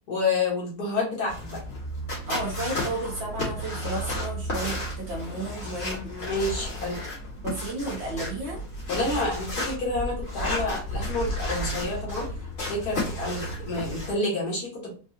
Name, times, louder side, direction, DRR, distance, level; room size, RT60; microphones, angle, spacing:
voice 1, 0.1-1.6 5.6-7.0 8.9-12.4 12.7-14.9, left 2 dB, 70° left, -3 dB, 2.0 m, -29 dB
sound 1, 1.3-14.1, left 1 dB, 55° left, 2.1 m, -33 dB
voice 2, 2.3-6.0 7.4-8.6 9.0-9.3, right 2 dB, 50° right, -2 dB, 1.0 m, -33 dB
4.5 x 2.3 x 2.8 m, 0.37 s
omnidirectional pair, 1.7 m